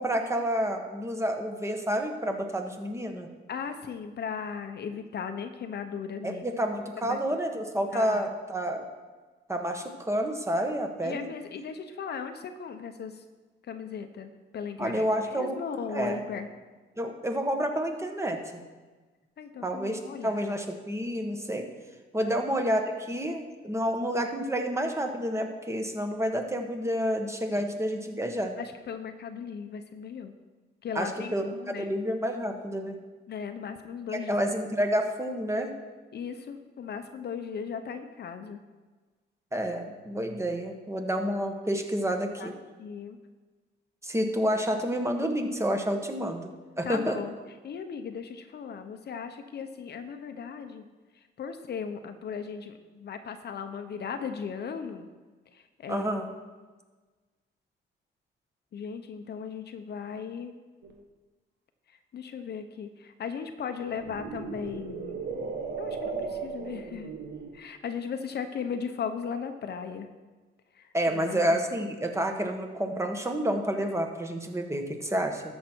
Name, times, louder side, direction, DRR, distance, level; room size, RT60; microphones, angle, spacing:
voice 1, 0.0-3.3 6.2-8.9 9.5-11.3 14.8-15.6 15.9-16.2 17.0-18.6 19.6-21.7 22.1-28.5 30.9-32.9 34.1-35.7 39.5-42.5 44.0-46.5 46.8-47.2 55.9-56.3 70.9-75.4, equal, 15° right, 4 dB, 1.5 m, -29 dB
voice 2, 3.5-6.4 7.1-7.2 7.9-8.3 11.0-13.2 13.7-16.5 19.4-20.4 22.2-22.4 27.5-27.7 28.6-30.3 30.8-31.9 33.3-34.4 36.1-38.6 42.4-42.5 42.8-43.2 46.8-47.3 47.6-50.8 51.4-55.1 55.5-56.1 58.7-60.5 62.1-65.2 65.8-67.1 67.5-70.1 70.7-71.6, left 6 dB, 55° left, 8 dB, 0.9 m, -37 dB
sound 1, 60.8-60.9 63.8-67.6, right 5 dB, 60° right, 1.5 m, -36 dB
13.0 x 6.6 x 4.6 m, 1.3 s
cardioid pair, 90°, 20 cm